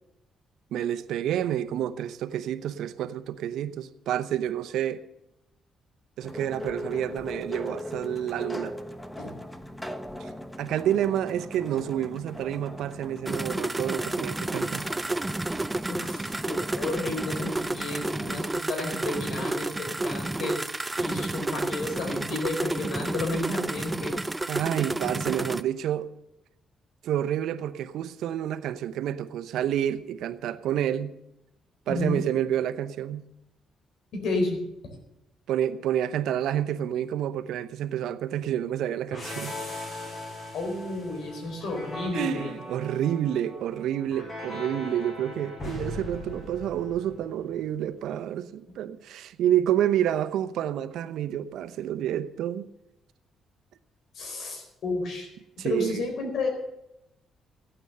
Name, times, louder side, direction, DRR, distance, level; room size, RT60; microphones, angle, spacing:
voice 1, 0.7-5.1 6.2-8.8 10.2-10.3 10.6-14.9 24.5-26.1 27.0-31.1 31.9-33.2 35.5-39.5 42.1-52.7 55.6-56.0, right 11 dB, 80° right, 0.8 m, -29 dB
sound 1, 6.2-18.3, left 1 dB, 5° left, 1.2 m, -40 dB
sound 2, 13.3-25.6, right 2 dB, 15° right, 0.5 m, -31 dB
voice 2, 15.9-20.6 21.0-24.2 31.9-32.2 34.1-35.0 40.5-42.5 54.1-55.3 55.6-56.5, left 2 dB, 70° left, 4.3 m, -32 dB
sound 3, 39.1-47.6, left 1 dB, 40° left, 6.2 m, -39 dB
14.5 x 9.0 x 6.8 m
cardioid pair, 90°, 0 cm